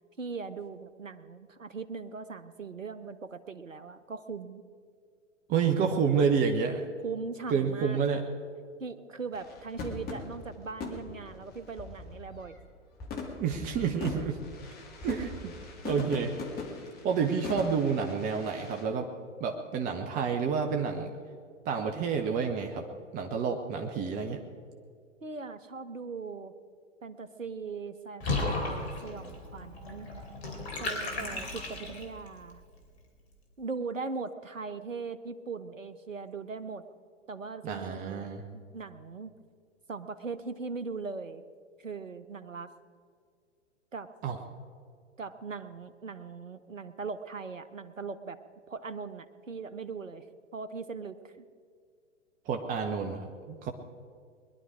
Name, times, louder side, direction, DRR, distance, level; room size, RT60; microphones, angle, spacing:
voice 1, 0.2-4.6 7.0-8.0 8.8-12.6 25.2-26.5 27.0-30.1 30.8-32.6 33.6-36.8 37.3-38.3 38.5-39.3 39.9-41.4 41.8-42.7 43.9-44.1 45.2-48.4 48.7-50.3 50.5-51.3, right 4 dB, 85° right, 13 dB, 0.9 m, -39 dB
voice 2, 5.5-6.8 7.5-8.2 13.4-14.4 15.0-15.5 15.8-16.4 17.0-19.1 19.4-21.1 21.6-22.8 23.1-24.4 37.6-38.4 44.2-44.4 52.5-53.7, right 6 dB, 20° right, 4 dB, 0.9 m, -29 dB
sound 1, 9.3-12.6 13.0-18.8, left 4 dB, 25° left, 2.3 m, -41 dB
Water / Bathtub (filling or washing), 28.2-32.3, left 2 dB, 55° left, 3.4 m, -34 dB
21.5 x 11.5 x 5.0 m, 2.1 s
figure-of-eight pair, 110°, 37 cm